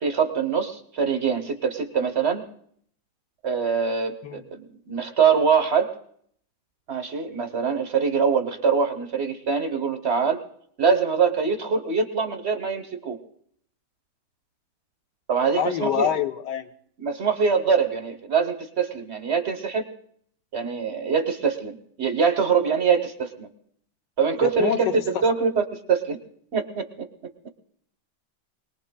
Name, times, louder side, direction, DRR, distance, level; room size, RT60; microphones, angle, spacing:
voice 1, 0.0-2.4 3.4-5.9 6.9-10.4 10.8-13.2 15.3-16.1 17.0-19.8 20.5-23.5 24.2-24.9 25.2-26.2 26.5-27.0, right 6 dB, 45° right, 7 dB, 0.9 m, -24 dB
voice 2, 15.6-16.7 24.4-25.2, left 9 dB, 65° left, 8 dB, 1.4 m, -26 dB
26.0 x 19.5 x 2.2 m, 0.64 s
omnidirectional pair, 2.1 m